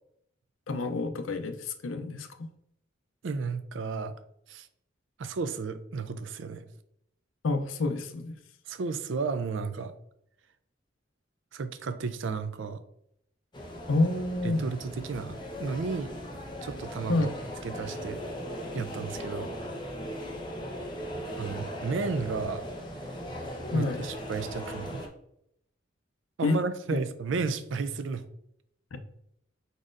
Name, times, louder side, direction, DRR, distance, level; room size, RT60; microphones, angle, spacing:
voice 1, 0.7-2.5 7.4-8.3 13.9-14.6 17.1-17.3 20.0-20.4 23.7-24.1 26.4-26.6 26.9-27.0 28.9-29.0, left 2 dB, 90° left, 8 dB, 0.5 m, -28 dB
voice 2, 3.2-4.2 4.5-4.7 5.2-6.6 8.7-9.9 11.5-12.8 14.4-16.1 16.6-17.3 17.6-18.2 18.7-19.6 21.1-22.6 23.7-25.0 26.4-28.2, right 4 dB, 70° right, 11 dB, 0.4 m, -33 dB
sound 1, 13.5-25.1, equal, 25° left, 0.8 m, -38 dB
4.8 x 4.1 x 2.5 m, 0.74 s
head